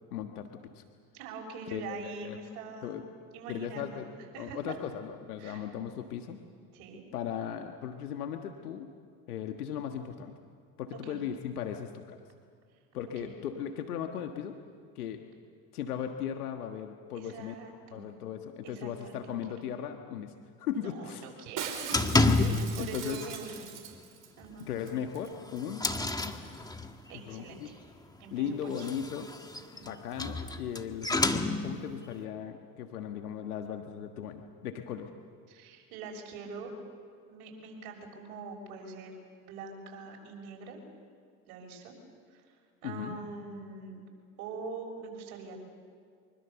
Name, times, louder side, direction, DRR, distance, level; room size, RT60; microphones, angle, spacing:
voice 1, 0.1-0.8 1.7-2.0 2.2-2.4 2.8-3.0 3.5-4.1 4.4-6.4 7.1-8.9 9.3-10.3 10.8-12.2 12.9-14.6 14.9-15.2 15.7-17.5 17.9-20.3 20.6-21.2 22.3-23.2 24.6-25.9 26.2-26.4 27.3-27.7 28.3-29.3 29.8-35.1 42.8-43.2, left 9 dB, 85° left, 5 dB, 1.6 m, -37 dB
voice 2, 1.1-3.0 3.3-4.0 4.3-4.8 5.4-5.7 6.7-7.1 10.9-11.2 13.2-13.3 17.1-18.2 18.6-19.4 20.7-22.0 22.3-23.7 24.4-24.7 27.1-27.7 28.2-28.9 29.5-30.0 35.5-36.7 37.3-39.1 39.4-40.8 41.5-42.0 42.3-42.4 42.8-44.0 44.4-45.6, right 4 dB, 70° right, 1 dB, 6.6 m, -44 dB
Shatter, 21.6-24.3 24.6-24.7 24.9-25.3 25.6-25.7, right 8 dB, 45° right, 4.2 m, -41 dB
sound 1, 21.9-22.9 23.2-23.6 23.9-24.0 24.4-24.5 25.1-27.1 28.6-32.0, left 2 dB, 10° left, 1.7 m, -29 dB
25.5 x 23.5 x 7.0 m, 2.2 s
hypercardioid pair, 90°, 44 cm